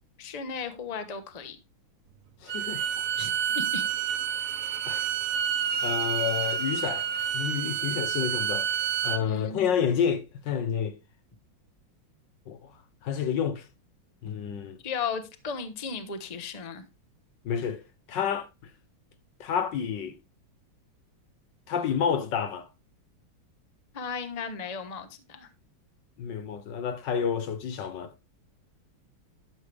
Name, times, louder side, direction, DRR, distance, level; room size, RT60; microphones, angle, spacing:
voice 1, 0.2-1.6 3.2-3.8 9.2-9.7 14.8-16.8 23.9-25.5, left 5 dB, 30° left, 0.8 m, -35 dB
voice 2, 2.4-2.8 4.8-5.1 5.8-8.7 9.0-10.9 12.5-12.6 13.0-13.6 14.2-14.8 17.4-17.8 18.1-18.5 19.4-20.2 21.7-22.7 26.2-28.1, left 7 dB, 70° left, 1.4 m, -29 dB
Bowed string instrument, 2.5-9.2, right 8 dB, 60° right, 0.9 m, -29 dB
12.0 x 6.6 x 3.4 m
omnidirectional pair, 2.2 m